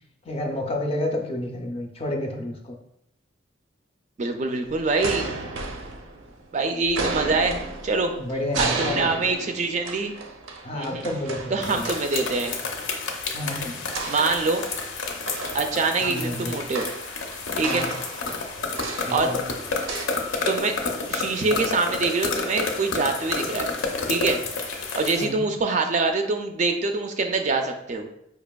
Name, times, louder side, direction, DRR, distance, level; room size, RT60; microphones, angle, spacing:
voice 1, 0.2-2.8 8.2-9.1 10.6-11.9 13.3-13.8 16.0-16.6 17.6-18.0 19.0-19.5 25.2-25.5, left 1 dB, 30° left, 2 dB, 0.4 m, -30 dB
voice 2, 4.2-5.3 6.5-8.1 8.6-10.1 10.7-11.1 11.5-12.5 14.1-14.6 15.5-16.9 17.6-17.9 19.1-19.3 20.5-20.8 21.1-23.7 24.1-24.4 24.9-28.1, right 3 dB, 40° right, 5 dB, 0.3 m, -24 dB
sound 1, 4.7-6.5 6.8-12.3 13.9-14.9 15.3-20.1, right 3 dB, 85° right, 0.5 m, -33 dB
sound 2, 11.6-25.2, left 4 dB, 85° left, 0.6 m, -30 dB
4.9 x 2.8 x 2.2 m, 0.77 s
head